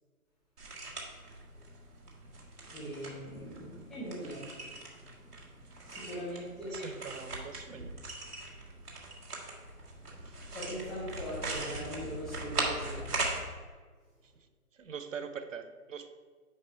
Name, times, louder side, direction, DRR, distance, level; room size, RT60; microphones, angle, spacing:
sound 1, 0.6-13.4, right 3 dB, 75° right, 1.9 m, -40 dB
voice 1, 2.7-4.4 5.8-7.0 10.5-13.1, equal, ahead, -13 dB, 1.1 m, -40 dB
voice 2, 6.7-8.0 10.1-10.4 14.7-16.1, right 6 dB, 55° right, 10 dB, 0.6 m, -43 dB
9.7 x 3.3 x 4.3 m, 1.5 s
figure-of-eight pair, 155°, 46 cm